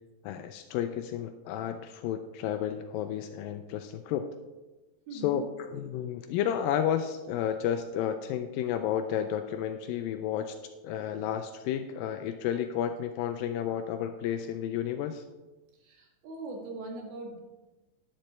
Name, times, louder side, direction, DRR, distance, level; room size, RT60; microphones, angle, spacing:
voice 1, 0.2-4.3 5.1-10.6 10.8-15.2, left 9 dB, 80° left, 7 dB, 2.2 m, -32 dB
voice 2, 5.1-5.5 15.8-17.4, right 2 dB, 85° right, 1 dB, 3.6 m, -41 dB
10.5 x 10.0 x 4.2 m, 1.2 s
omnidirectional pair, 4.2 m